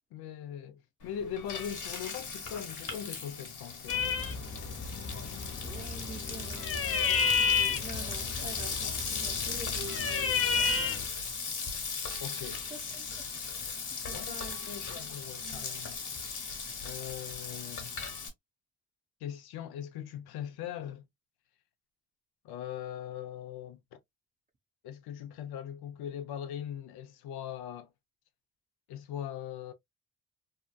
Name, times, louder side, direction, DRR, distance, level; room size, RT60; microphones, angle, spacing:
voice 1, 0.1-4.4 12.2-12.6 14.1-16.0 16.8-17.9 19.2-21.1 22.4-24.0 24.8-27.9 28.9-29.7, left 9 dB, 85° left, 0.6 m, -41 dB
Frying (food), 1.0-18.3, left 5 dB, 55° left, 1.2 m, -38 dB
sound 1, 3.9-11.1, left 5 dB, 40° left, 0.6 m, -31 dB
voice 2, 5.6-10.7 12.7-13.3 13.9-16.1, right 3 dB, 20° right, 0.6 m, -48 dB
2.8 x 2.3 x 2.2 m
supercardioid pair, 60°, 37 cm